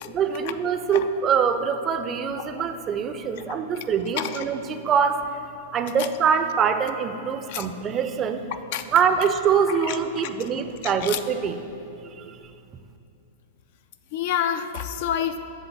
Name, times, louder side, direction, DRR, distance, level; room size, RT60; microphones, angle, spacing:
voice 1, 0.1-5.3 5.7-8.4 8.9-11.6 12.0-12.5, right 6 dB, 30° right, 9 dB, 0.4 m, -24 dB
voice 2, 10.8-11.2 14.1-15.4, left 9 dB, 55° left, 10 dB, 0.4 m, -28 dB
7.3 x 3.9 x 6.6 m, 2.6 s
hypercardioid pair, 105°, 0 cm